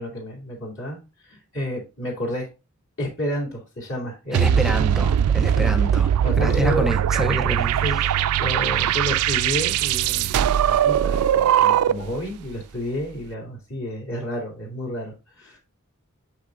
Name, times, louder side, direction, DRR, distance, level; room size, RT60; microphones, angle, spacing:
voice 1, 0.0-2.5 3.0-4.8 5.4-5.7 6.2-7.0 7.8-15.6, equal, 60° left, 2.5 m, -31 dB
voice 2, 4.3-6.1 6.4-8.0, equal, ahead, 0.5 m, -27 dB
sound 1, 4.3-12.2, right 9 dB, 85° right, 0.3 m, -20 dB
7.9 x 3.4 x 3.7 m
head